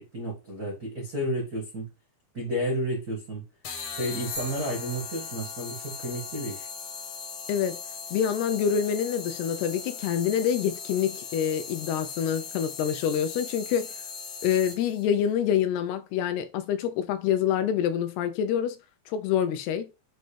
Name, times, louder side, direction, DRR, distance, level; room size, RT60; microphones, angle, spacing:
voice 1, 0.0-1.9 2.3-3.4 4.0-6.7, equal, 85° right, 0.8 m, -31 dB
sound 1, 3.6-15.0, left 6 dB, 60° left, 2.0 m, -39 dB
sound 2, 4.3-6.1, left 1 dB, 25° left, 0.6 m, -44 dB
voice 2, 7.5-7.8 8.1-13.9 14.4-18.8 19.1-19.9, left 9 dB, 80° left, 2.5 m, -26 dB
7.8 x 2.7 x 5.0 m
omnidirectional pair, 4.9 m